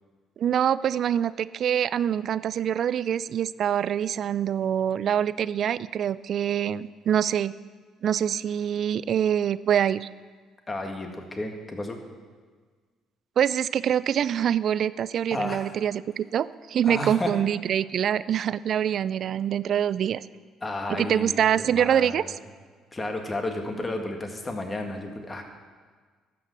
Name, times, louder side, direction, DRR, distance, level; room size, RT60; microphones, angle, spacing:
voice 1, 0.4-7.5 8.0-10.1 13.4-20.2 21.0-22.2, right 9 dB, 55° right, 17 dB, 0.3 m, -25 dB
voice 2, 10.7-12.0 15.3-15.6 16.8-17.3 20.6-22.3 22.9-25.4, left 2 dB, 25° left, 3 dB, 1.9 m, -32 dB
13.0 x 6.0 x 7.5 m, 1.5 s
hypercardioid pair, 55°, 0 cm